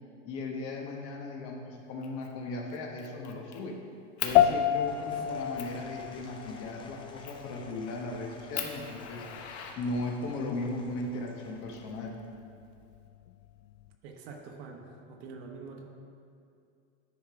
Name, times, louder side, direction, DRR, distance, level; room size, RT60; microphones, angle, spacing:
voice 1, 0.2-3.8 4.2-9.2 9.8-12.2, left 2 dB, 40° left, 1 dB, 1.2 m, -37 dB
Fire, 2.0-2.3 2.7-3.6 4.2-4.4 5.0-5.1 5.6-5.8 7.2-7.5 8.0-8.1 8.5-10.3 11.4-12.3, left 9 dB, 65° left, 1.1 m, -39 dB
Applause / Crowd, 4.2-12.4, left 4 dB, 15° left, 0.4 m, -53 dB
sound 1, 4.4-13.9, left 11 dB, 85° left, 0.6 m, -32 dB
voice 2, 5.0-5.5 14.0-15.8, right 4 dB, 55° right, 2 dB, 1.4 m, -45 dB
10.0 x 5.8 x 4.8 m, 2.5 s
supercardioid pair, 145°, 36 cm